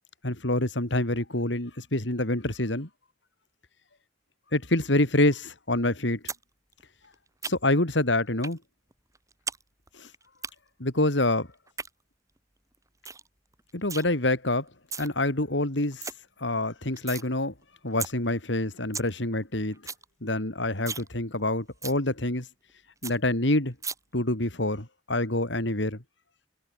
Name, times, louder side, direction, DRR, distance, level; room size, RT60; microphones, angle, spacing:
voice 1, 0.2-2.9 4.5-6.2 7.4-8.6 9.9-10.1 10.8-11.5 13.7-14.7 15.0-16.1 16.4-17.5 17.8-19.8 20.2-22.5 23.0-23.7 24.1-26.0, left 1 dB, 75° left, 3.5 m, -26 dB
sound 1, 6.3-6.4 6.7-7.8 8.4-8.6 8.9-9.6 9.9-10.5 11.5-11.9 12.4-12.5 12.7-12.8 13.0-13.3 13.5-14.0 14.7-15.1 15.5-15.6 15.8-16.1 16.5-17.3 17.6-17.7 18.0-18.1 18.5-18.6 18.8-19.1 19.4-19.5 19.7-20.0 20.4-20.5 20.8-21.1 21.4-21.5 21.8-22.0 22.4-22.5 22.7-22.8 23.0-23.1 23.8-23.9, right 5 dB, 20° right, 3.3 m, -35 dB
head